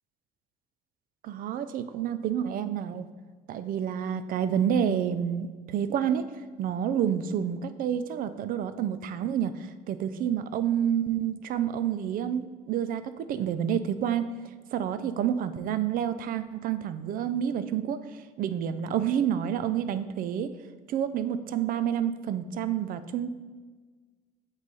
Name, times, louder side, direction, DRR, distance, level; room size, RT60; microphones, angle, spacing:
voice 1, 1.2-3.1 3.5-6.2 6.6-9.5 9.9-14.3 14.7-18.0 18.4-20.5 20.9-23.3, right 9 dB, 55° right, 12 dB, 0.4 m, -29 dB
7.4 x 3.2 x 4.1 m, 1.4 s
cardioid pair, 110°, 17 cm